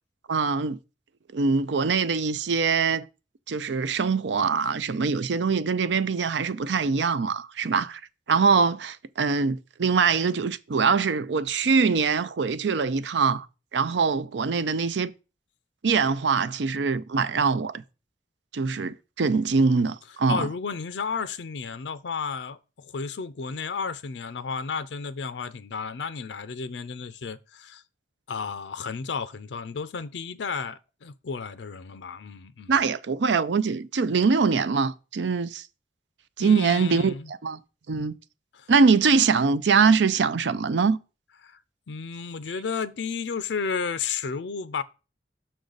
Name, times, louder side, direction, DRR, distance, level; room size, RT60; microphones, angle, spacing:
voice 1, 0.3-0.8 1.3-3.1 3.5-8.0 8.3-13.5 13.7-15.1 15.8-17.8 18.5-20.5 32.7-35.6 36.4-37.6 37.9-38.2 38.7-41.0, right 5 dB, 80° right, 0.5 m, -23 dB
voice 2, 20.3-27.8 28.3-32.7 36.4-37.3 38.5-38.7 41.4-41.6 41.9-44.8, left 5 dB, 80° left, 0.5 m, -33 dB
6.5 x 6.1 x 3.9 m
head